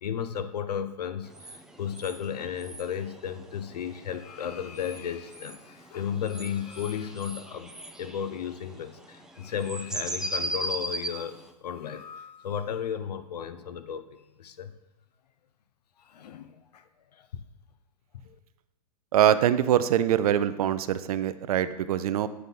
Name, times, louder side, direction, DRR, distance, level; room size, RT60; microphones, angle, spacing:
voice 1, 0.0-7.7 8.0-14.7 16.0-17.4 18.2-18.4, left 8 dB, 75° left, 11 dB, 0.7 m, -34 dB
sound 1, 1.3-11.5, right 1 dB, 5° right, 0.4 m, -38 dB
voice 2, 19.1-22.3, right 10 dB, 60° right, 14 dB, 0.5 m, -23 dB
7.9 x 4.2 x 5.3 m, 0.98 s
hypercardioid pair, 120°, 21 cm